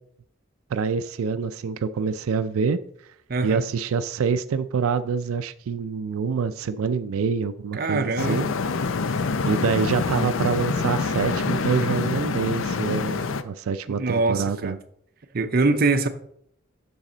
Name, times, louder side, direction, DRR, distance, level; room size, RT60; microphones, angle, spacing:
voice 1, 0.7-2.8 3.4-8.5 9.5-14.8, right 5 dB, 90° right, 0.4 m, -26 dB
voice 2, 3.3-3.7 7.7-8.4 13.9-14.8 15.3-16.1, right 3 dB, 45° right, 0.6 m, -23 dB
sound 1, 8.2-13.4, left 4 dB, 75° left, 0.5 m, -26 dB
7.3 x 6.3 x 3.9 m
head